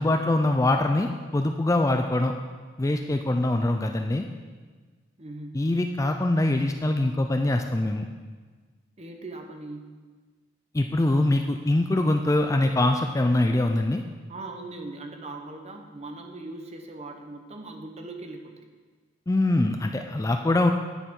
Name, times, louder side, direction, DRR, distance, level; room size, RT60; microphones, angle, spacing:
voice 1, 0.0-2.3 2.8-4.3 5.5-8.1 10.7-14.0 19.3-20.7, left 2 dB, 15° left, 5 dB, 0.4 m, -23 dB
voice 2, 5.2-5.6 9.0-9.9 14.3-18.6, right 2 dB, 35° right, 4 dB, 0.9 m, -40 dB
10.5 x 9.2 x 3.7 m, 1.4 s
head